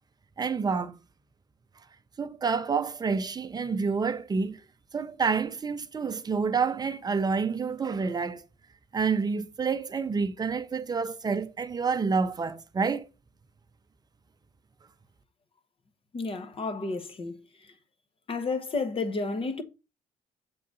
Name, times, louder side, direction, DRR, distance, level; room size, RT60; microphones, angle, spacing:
voice 1, 0.4-1.0 2.2-4.6 4.9-8.4 8.9-13.1, right 5 dB, 25° right, 0.7 m, -28 dB
voice 2, 16.1-17.7 18.3-19.6, left 3 dB, 35° left, 0.9 m, -32 dB
6.7 x 3.8 x 4.0 m
cardioid pair, 110°, 17 cm